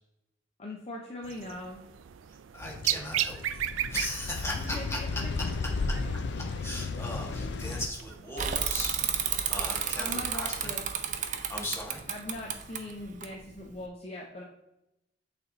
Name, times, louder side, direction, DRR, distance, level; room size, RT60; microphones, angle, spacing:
voice 1, 0.6-1.8 4.6-5.3 5.9-6.1 10.0-10.8 12.1-14.4, left 1 dB, 35° left, -1 dB, 0.7 m, -40 dB
sound 1, 1.2-11.5, right 11 dB, 90° right, 0.4 m, -38 dB
voice 2, 2.5-3.6 3.9-5.0 6.4-10.7 11.5-12.0, left 1 dB, 15° left, -3 dB, 1.7 m, -38 dB
sound 2, 2.6-7.9, left 3 dB, 60° left, 0.4 m, -34 dB
Bicycle / Mechanisms, 8.4-13.8, right 8 dB, 40° right, 0.6 m, -32 dB
8.3 x 3.5 x 4.0 m, 0.87 s
head